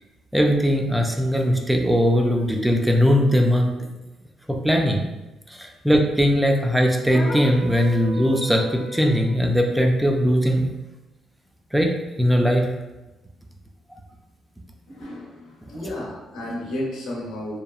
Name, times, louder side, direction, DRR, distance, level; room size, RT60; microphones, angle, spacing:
voice 1, 0.3-3.7 4.5-5.0 5.5-10.7 11.7-12.7, equal, 5° right, 2 dB, 0.3 m, -20 dB
sound 1, 7.1-9.3, equal, 55° left, 0.7 m, -34 dB
voice 2, 14.9-17.6, left 1 dB, 90° left, -3 dB, 0.8 m, -32 dB
2.8 x 2.2 x 2.3 m, 1.1 s
cardioid pair, 90°, 0 cm